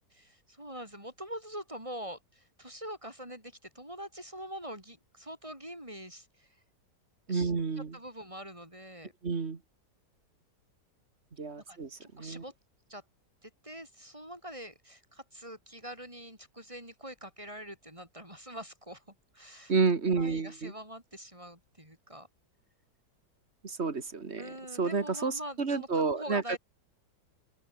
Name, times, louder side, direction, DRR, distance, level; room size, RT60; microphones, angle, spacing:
voice 1, 0.1-6.5 7.3-9.1 11.6-12.5 12.9-13.0 13.4-19.7 20.2-22.3 24.4-26.6, equal, 15° right, 7.3 m, -44 dB
voice 2, 7.3-8.0 9.2-9.6 11.4-11.9 12.1-12.4 19.7-20.7 23.6-24.4 24.8-26.4, right 4 dB, 40° right, 1.9 m, -30 dB
open air
omnidirectional pair, 1.8 m